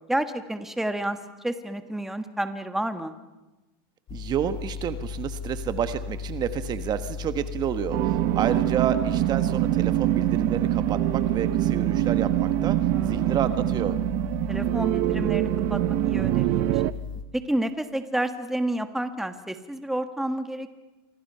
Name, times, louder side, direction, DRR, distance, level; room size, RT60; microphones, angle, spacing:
voice 1, 0.1-1.2 1.4-3.1 8.5-8.7 12.9-13.4 14.5-16.8 17.3-20.7, right 1 dB, 5° right, 8 dB, 1.6 m, -30 dB
sound 1, 4.1-17.2, left 6 dB, 40° left, 2.6 m, -35 dB
voice 2, 4.1-14.0, right 9 dB, 35° right, 10 dB, 1.3 m, -30 dB
sound 2, 7.9-16.9, right 19 dB, 50° right, 0.7 m, -24 dB
28.0 x 25.5 x 5.6 m, 1.1 s
supercardioid pair, 120°, 12 cm